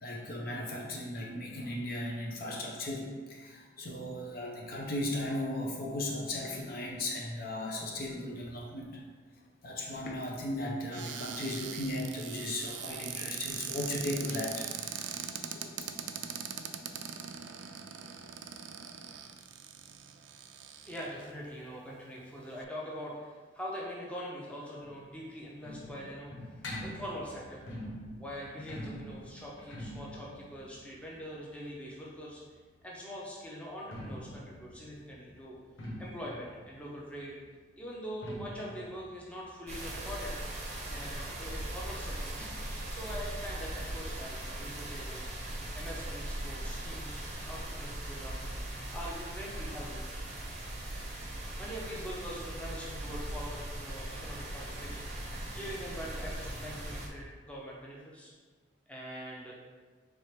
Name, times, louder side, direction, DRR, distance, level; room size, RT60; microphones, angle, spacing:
voice 1, 0.0-9.0 9.6-14.7 15.5-15.7, left 1 dB, 50° left, -1 dB, 0.6 m, -36 dB
Cupboard open or close, 10.9-21.3 21.9-22.0 22.3-22.6, right 8 dB, 70° right, 0.3 m, -41 dB
voice 2, 20.9-26.3 26.8-27.6 28.2-32.4 32.8-35.6 36.0-37.4 37.8-40.3 40.9-42.5 42.9-45.3 45.7-48.4 48.9-50.0 51.6-55.1 55.5-58.3 58.9-59.5, equal, 5° left, -5 dB, 0.7 m, -43 dB
sound 1, 24.8-32.5 33.6-41.0 41.3-41.4 41.6-41.7 42.4-42.5, left 1 dB, 85° left, 0.8 m, -45 dB
sound 2, 39.7-57.1, right 1 dB, 35° right, 0.6 m, -39 dB
4.5 x 3.3 x 3.2 m, 1.4 s
head